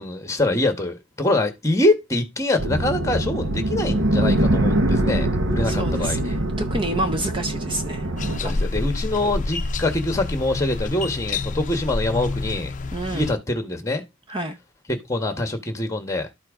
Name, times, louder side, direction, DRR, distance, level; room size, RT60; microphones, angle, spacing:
voice 1, 0.0-6.3 8.4-12.7 13.1-14.0 14.9-16.3, left 2 dB, 15° left, 1.6 m, -24 dB
sound 1, 2.6-8.4, right 1 dB, 70° right, 1.1 m, -23 dB
voice 2, 5.6-8.1 8.4-8.6 12.9-13.3 14.3-14.6, right 1 dB, 25° right, 0.7 m, -29 dB
sound 2, 8.2-13.3, left 3 dB, 40° left, 0.6 m, -28 dB
12.0 x 4.5 x 5.1 m
head